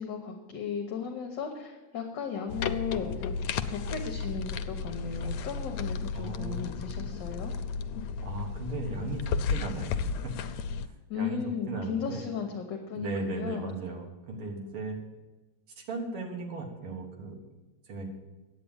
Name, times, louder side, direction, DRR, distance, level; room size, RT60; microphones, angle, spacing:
voice 1, 0.0-3.4 3.7-7.5 11.1-13.7, left 6 dB, 60° left, 3 dB, 1.5 m, -35 dB
sound 1, 2.5-10.9, left 5 dB, 85° left, 1.5 m, -34 dB
voice 2, 6.1-6.7 8.2-10.2 10.8-12.3 12.9-15.0 15.8-17.4 17.8-18.1, right 2 dB, 85° right, 2 dB, 2.5 m, -37 dB
9.7 x 8.4 x 7.1 m, 1.2 s
omnidirectional pair, 2.4 m